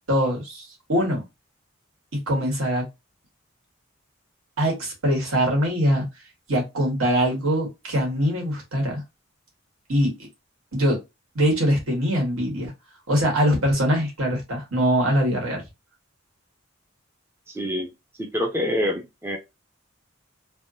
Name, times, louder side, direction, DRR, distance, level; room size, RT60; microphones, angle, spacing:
voice 1, 0.1-1.2 2.1-2.8 4.6-6.1 6.5-9.0 9.9-10.1 10.7-11.0 11.3-12.7 13.1-15.6, equal, 85° right, 1.6 m, -22 dB
voice 2, 17.5-17.9 18.2-19.4, equal, 10° right, 0.4 m, -26 dB
3.4 x 2.2 x 2.5 m
head